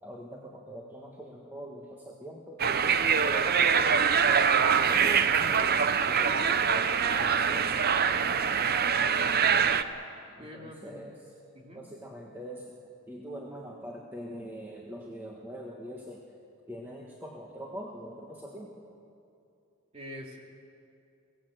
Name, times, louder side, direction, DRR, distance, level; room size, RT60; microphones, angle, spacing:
voice 1, 0.0-2.6 3.2-5.8 6.1-7.8 9.8-11.1 11.7-12.7 13.1-16.4 16.7-18.7, equal, 10° right, -2 dB, 1.5 m, -43 dB
sound 1, 2.6-9.8, right 6 dB, 45° right, 0.7 m, -24 dB
voice 2, 8.9-9.3 10.4-11.0 11.5-11.8 19.9-20.4, left 1 dB, 30° right, 0 dB, 3.0 m, -45 dB
23.0 x 17.5 x 7.9 m, 2.6 s
head